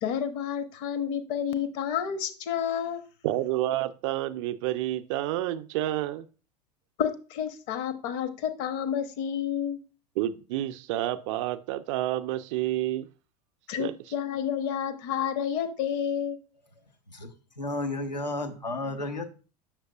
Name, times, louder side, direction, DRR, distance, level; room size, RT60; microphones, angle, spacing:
voice 1, 0.0-3.0 7.0-9.8 13.7-16.4, left 8 dB, 45° left, 10 dB, 0.9 m, -30 dB
voice 2, 3.2-6.3 10.2-13.1 13.8-13.9, right 14 dB, 45° right, 12 dB, 0.5 m, -29 dB
voice 3, 17.1-19.3, left 2 dB, 85° left, 4 dB, 1.0 m, -33 dB
7.3 x 6.4 x 2.3 m, 0.35 s
figure-of-eight pair, 80°, 21 cm